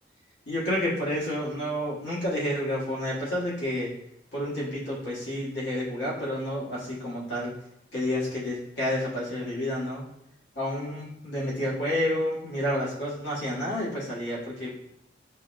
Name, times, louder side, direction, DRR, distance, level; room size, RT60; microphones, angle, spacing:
voice 1, 0.5-3.9 4.3-7.5 7.9-10.0 10.5-14.7, left 1 dB, 90° left, -7 dB, 1.3 m, -30 dB
5.1 x 2.1 x 2.5 m, 0.82 s
head